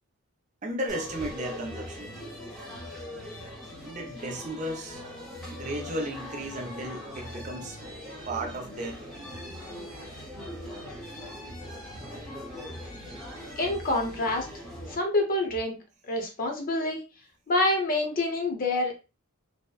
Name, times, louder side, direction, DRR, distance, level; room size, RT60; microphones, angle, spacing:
voice 1, 0.6-2.2 3.8-5.0 5.5-7.8 8.3-9.4 12.9-13.0, right 1 dB, 35° right, 0.5 m, -35 dB
sound 1, 0.9-15.0, left 1 dB, ahead, 0.7 m, -41 dB
voice 2, 13.6-14.5 14.9-15.8 16.0-17.0 17.5-19.0, left 2 dB, 40° left, 0.6 m, -27 dB
2.7 x 2.0 x 2.2 m
head